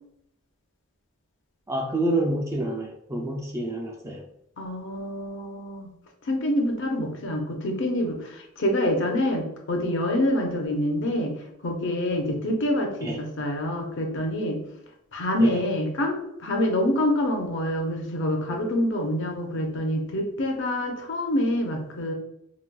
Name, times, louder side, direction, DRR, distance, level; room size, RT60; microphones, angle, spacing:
voice 1, 1.7-4.2 13.0-13.2 15.4-15.6, right 1 dB, 15° right, 0 dB, 0.3 m, -28 dB
voice 2, 4.6-5.9 6.3-11.3 11.6-14.6 15.1-22.1, left 1 dB, 55° left, 3 dB, 0.6 m, -26 dB
3.9 x 2.2 x 2.2 m, 0.78 s
head